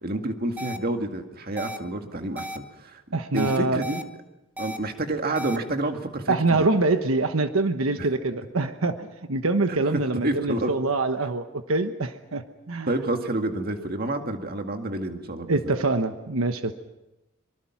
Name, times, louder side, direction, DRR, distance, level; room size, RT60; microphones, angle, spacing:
voice 1, 0.0-3.0 3.3-4.0 4.6-6.7 8.0-8.1 9.7-10.7 12.9-15.7, right 2 dB, 45° right, 5 dB, 2.0 m, -29 dB
sound 1, 0.6-0.8 1.6-1.8 2.4-2.6 3.4-4.0 4.6-4.8 5.4-5.6, equal, 10° right, 1.2 m, -34 dB
voice 2, 3.1-3.8 6.3-12.9 15.5-16.7, right 3 dB, 90° right, 8 dB, 1.2 m, -25 dB
24.5 x 24.0 x 6.0 m, 0.97 s
head